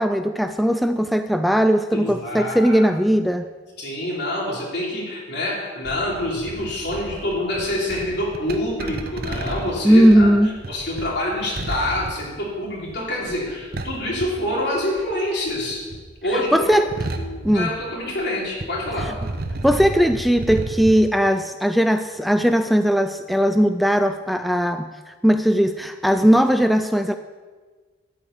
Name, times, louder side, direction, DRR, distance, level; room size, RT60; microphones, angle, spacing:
voice 1, 0.0-3.5 9.8-10.6 16.5-16.9 17.4-17.7 19.0-19.1 19.6-24.9 25.2-27.1, equal, ahead, 8 dB, 0.3 m, -18 dB
voice 2, 1.9-2.9 3.8-10.3 10.7-15.8 16.2-16.7 17.2-19.1, left 1 dB, 65° left, -4 dB, 3.4 m, -26 dB
sound 1, 5.8-15.1 15.4-18.3 18.5-20.9, right 2 dB, 55° right, 0.9 m, -32 dB
12.5 x 5.0 x 8.5 m, 1.4 s
head